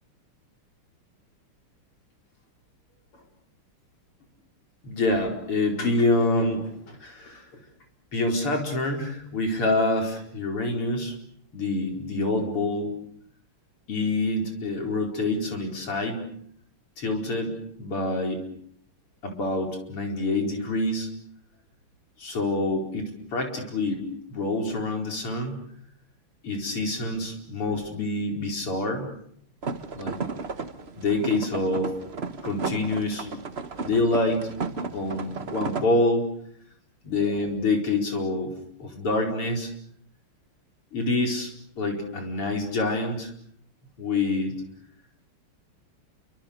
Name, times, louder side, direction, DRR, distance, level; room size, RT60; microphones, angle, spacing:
voice 1, 4.8-7.5 8.1-11.2 11.5-13.0 13.9-16.2 17.0-17.5 17.8-18.4 19.2-21.1 22.2-24.0 24.3-25.6 26.4-29.1 29.9-30.2 31.0-31.9 32.4-33.3 33.8-34.5 34.9-36.3 37.0-38.5 38.8-39.7 40.9-41.5 41.8-43.3 44.0-44.5, left 2 dB, 80° left, 2 dB, 5.6 m, -26 dB
sound 1, 29.6-35.9, right 4 dB, 35° right, 1.2 m, -34 dB
29.0 x 25.0 x 6.7 m, 0.66 s
omnidirectional pair, 2.4 m